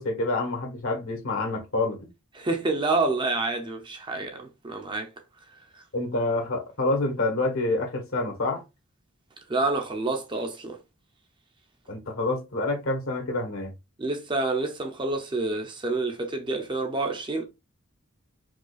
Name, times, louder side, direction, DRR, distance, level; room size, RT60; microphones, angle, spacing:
voice 1, 0.0-2.1 5.9-8.6 11.9-13.7, left 2 dB, 70° left, 1.2 m, -27 dB
voice 2, 2.3-5.1 5.7-5.8 9.5-10.8 14.0-17.4, right 3 dB, 20° right, 0.5 m, -28 dB
4.9 x 2.3 x 2.4 m
head